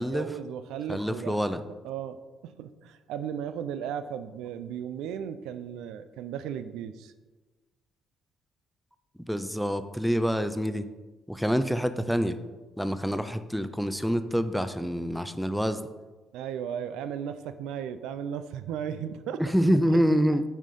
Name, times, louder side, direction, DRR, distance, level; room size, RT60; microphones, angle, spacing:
voice 1, 0.0-1.4 1.8-7.1 16.3-19.4, right 8 dB, 90° right, 11 dB, 0.4 m, -36 dB
voice 2, 0.9-1.6 9.3-10.9 11.3-12.4 12.8-15.8 19.4-20.4, equal, ahead, 10 dB, 0.4 m, -26 dB
6.1 x 4.2 x 5.3 m, 1.2 s
cardioid pair, 110°, 0 cm